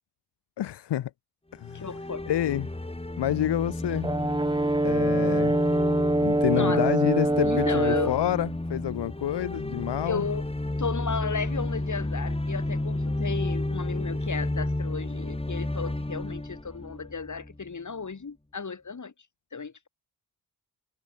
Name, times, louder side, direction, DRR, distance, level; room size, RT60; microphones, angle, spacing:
voice 1, 0.6-1.1 1.5-1.9 2.3-2.7 3.2-4.3 4.8-5.6 6.2-10.3, left 12 dB, 75° left, 2.1 m, -28 dB
sound 1, 1.6-17.7, left 1 dB, 15° left, 3.5 m, -32 dB
voice 2, 1.7-2.3 6.5-6.8 7.4-8.1 10.0-19.1 19.5-19.9, left 5 dB, 45° left, 4.3 m, -34 dB
Brass instrument, 4.0-8.2, right 1 dB, 10° right, 1.9 m, -24 dB
supercardioid pair, 40°, 42 cm